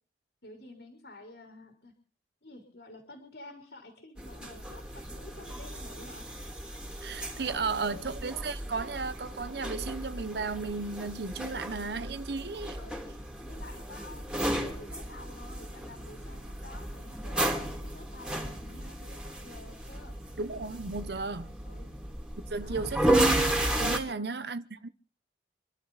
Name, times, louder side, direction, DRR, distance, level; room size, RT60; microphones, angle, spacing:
voice 1, 0.4-1.9 2.4-6.4 7.2-8.1 12.8-13.1 13.4-20.2 21.6-21.9 22.6-22.9 24.0-24.3, left 2 dB, 70° left, 4.1 m, -50 dB
sound 1, 4.2-24.0, right 1 dB, 5° right, 3.1 m, -33 dB
voice 2, 7.0-12.8 20.4-21.5 22.5-23.2 23.8-24.9, right 4 dB, 65° right, 0.9 m, -34 dB
27.5 x 12.5 x 4.1 m
head